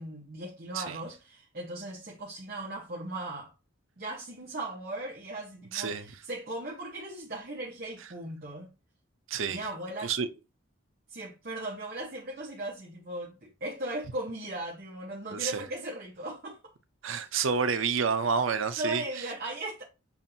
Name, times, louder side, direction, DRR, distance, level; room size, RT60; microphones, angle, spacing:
voice 1, 0.0-3.5 4.0-8.7 9.5-10.1 11.1-16.7 17.0-17.3 18.8-19.8, right 1 dB, 45° right, 1.0 m, -38 dB
voice 2, 5.7-6.1 9.3-9.6 10.0-10.3 15.3-15.6 17.0-19.3, right 6 dB, 75° right, 0.6 m, -29 dB
7.2 x 2.5 x 2.7 m
head